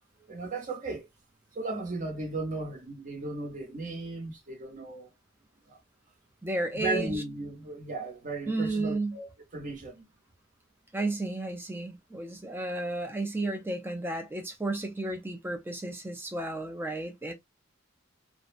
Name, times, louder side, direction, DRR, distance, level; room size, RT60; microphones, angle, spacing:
voice 1, 0.3-1.1 1.5-5.1 5.7-5.8 6.7-9.3 9.5-10.0, right 2 dB, 40° right, 0.8 m, -35 dB
voice 2, 6.4-7.2 8.5-9.2 10.9-17.3, right 2 dB, 10° right, 0.5 m, -33 dB
2.6 x 2.0 x 2.5 m
head